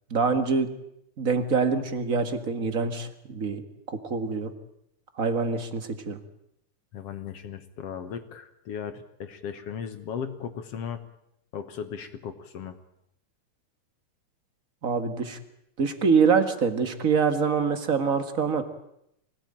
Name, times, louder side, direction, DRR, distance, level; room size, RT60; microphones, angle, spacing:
voice 1, 0.1-0.7 1.2-3.6 3.9-4.5 5.2-6.2 14.8-15.4 15.8-18.6, right 5 dB, 35° right, 9 dB, 1.7 m, -25 dB
voice 2, 6.9-11.0 11.5-12.8, left 7 dB, 60° left, 9 dB, 2.0 m, -36 dB
25.0 x 18.0 x 8.9 m, 0.79 s
omnidirectional pair, 3.5 m